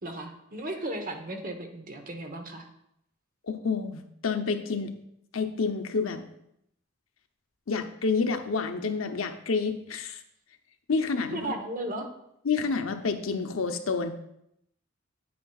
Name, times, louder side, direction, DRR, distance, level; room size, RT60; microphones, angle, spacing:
voice 1, 0.0-2.7 11.3-12.1, right 1 dB, 45° right, 4 dB, 1.0 m, -35 dB
voice 2, 3.5-4.9 5.3-6.2 7.7-10.2 10.9-11.4 12.4-14.1, left 4 dB, 85° left, 6 dB, 0.7 m, -29 dB
9.2 x 8.5 x 2.4 m, 0.77 s
head